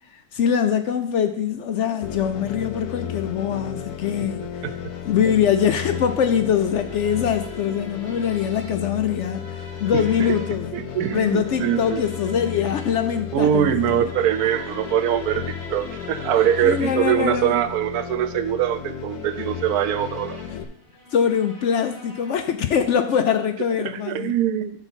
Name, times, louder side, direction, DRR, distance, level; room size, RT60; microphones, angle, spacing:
voice 1, 0.1-4.6 5.0-10.7 11.1-13.8 16.6-17.6 19.4-19.5 20.5-20.7 21.1-24.4, left 8 dB, 65° left, 8 dB, 0.8 m, -23 dB
sound 1, 2.0-20.6, left 9 dB, 80° left, 1.2 m, -34 dB
sound 2, 4.7-22.7, left 1 dB, 45° left, 2.1 m, -44 dB
voice 2, 9.9-10.4 10.7-12.0 13.3-20.4 23.8-24.7, right 10 dB, 85° right, 12 dB, 1.1 m, -23 dB
11.5 x 4.1 x 4.4 m, 0.68 s
omnidirectional pair, 1.6 m